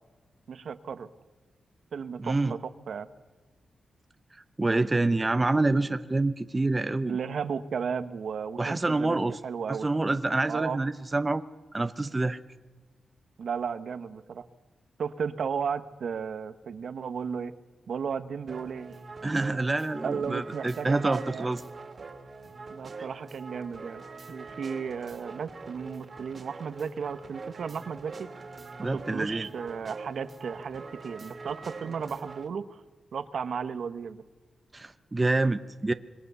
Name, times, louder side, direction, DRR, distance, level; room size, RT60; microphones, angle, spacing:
voice 1, 0.5-1.1 1.9-3.1 7.0-9.9 10.5-10.8 13.4-14.4 15.0-17.5 17.9-19.0 20.0-21.5 22.7-24.0 24.3-28.3 28.8-32.8 33.1-34.2, right 6 dB, 70° right, 11 dB, 1.2 m, -34 dB
voice 2, 2.2-2.5 4.6-7.2 8.6-9.4 9.7-11.4 11.7-12.4 19.2-21.6 28.8-29.5 34.7-35.9, right 2 dB, 20° right, 10 dB, 0.8 m, -27 dB
sound 1, 18.5-32.5, right 3 dB, 40° right, 2.5 m, -44 dB
26.5 x 22.0 x 6.9 m, 1.3 s
wide cardioid pair, 115°, 0 cm